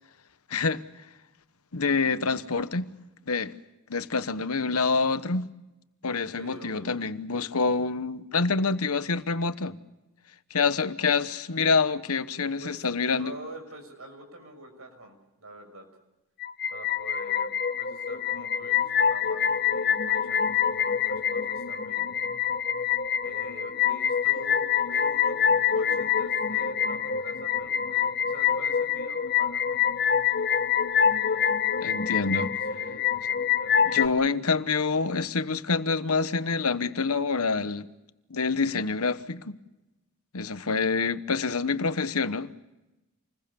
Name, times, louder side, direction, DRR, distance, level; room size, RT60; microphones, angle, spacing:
voice 1, 0.5-0.8 1.7-2.9 3.3-3.6 3.9-5.5 6.0-9.7 10.5-13.3 31.8-32.5 33.8-37.9 38.3-39.6 40.3-42.6, left 4 dB, 85° left, 1.1 m, -26 dB
voice 2, 6.3-6.9 12.6-15.9 16.7-22.1 23.2-25.3 25.7-29.9 32.7-34.2, right 1 dB, 75° right, 6.2 m, -46 dB
sound 1, 16.4-34.1, left 8 dB, 45° left, 0.9 m, -26 dB
28.0 x 21.0 x 7.0 m
head